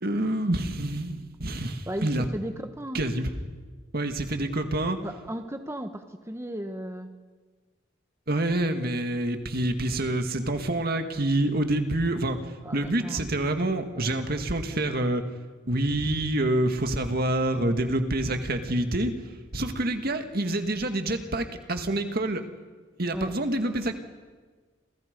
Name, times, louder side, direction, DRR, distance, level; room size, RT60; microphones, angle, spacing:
voice 1, 0.0-2.3 2.9-3.3 3.9-5.0 8.3-12.4 12.7-15.2 15.7-19.1 19.5-22.4 23.0-23.9, right 1 dB, 55° right, 6 dB, 2.0 m, -27 dB
voice 2, 1.9-3.0 5.0-7.1 12.6-13.3 23.1-23.3, right 1 dB, 15° right, 6 dB, 1.2 m, -35 dB
29.0 x 27.5 x 5.3 m, 1.4 s
head